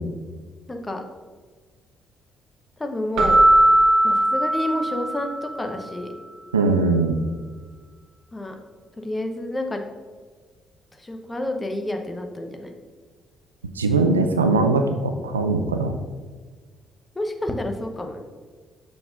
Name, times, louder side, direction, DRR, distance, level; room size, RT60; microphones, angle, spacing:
voice 1, 0.7-1.0 2.8-3.4 4.0-6.1 8.3-8.5 9.0-9.8 10.9-12.7 17.1-18.2, left 1 dB, 20° left, 4 dB, 0.9 m, -29 dB
Keyboard (musical), 3.2-5.6, right 1 dB, 65° right, 0.9 m, -18 dB
voice 2, 6.5-7.2 13.8-15.9, right 3 dB, 85° right, 6 dB, 0.3 m, -20 dB
6.9 x 6.1 x 2.5 m, 1.5 s
figure-of-eight pair, 45°, 0 cm